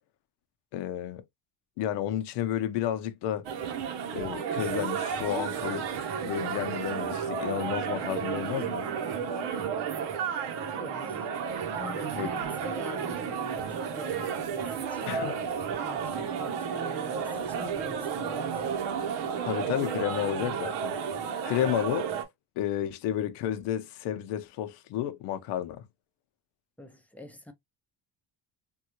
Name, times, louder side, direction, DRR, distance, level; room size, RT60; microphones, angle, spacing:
voice 1, 0.7-1.2 1.8-3.5 4.1-5.9 6.2-8.9 12.2-12.3 15.1-15.4 19.4-21.0 21.4-22.1 22.6-25.9, left 11 dB, 85° left, 0.7 m, -31 dB
sound 1, 3.4-22.2, right 7 dB, 80° right, 0.9 m, -32 dB
voice 2, 10.6-11.3 11.7-15.3 15.8-18.8 26.8-27.5, left 1 dB, 5° left, 0.6 m, -45 dB
3.6 x 2.3 x 2.8 m
cardioid pair, 135°, 41 cm